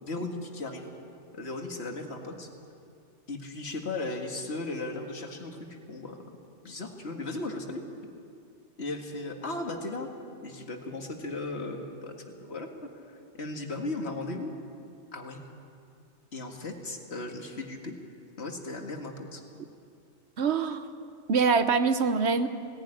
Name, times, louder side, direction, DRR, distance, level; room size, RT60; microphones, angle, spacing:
voice 1, 0.0-0.9 1.3-2.5 3.3-6.2 6.6-7.8 8.8-10.1 10.4-12.7 13.1-14.5 15.1-15.4 16.3-18.0 18.4-19.4, left 2 dB, 65° left, 3 dB, 2.1 m, -36 dB
voice 2, 20.4-20.8 21.3-22.5, right 5 dB, 65° right, 10 dB, 1.2 m, -24 dB
18.5 x 15.5 x 9.9 m, 2.5 s
omnidirectional pair, 1.2 m